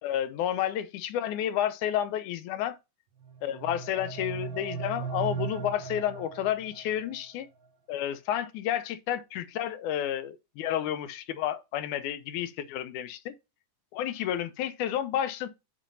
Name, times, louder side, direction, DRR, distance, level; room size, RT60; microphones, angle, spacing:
voice 1, 0.0-2.8 3.4-7.5 7.9-13.3 13.9-15.5, left 11 dB, 80° left, 2.0 m, -31 dB
sound 1, 3.2-7.2, right 6 dB, 85° right, 1.0 m, -37 dB
7.4 x 3.4 x 5.5 m
omnidirectional pair, 3.6 m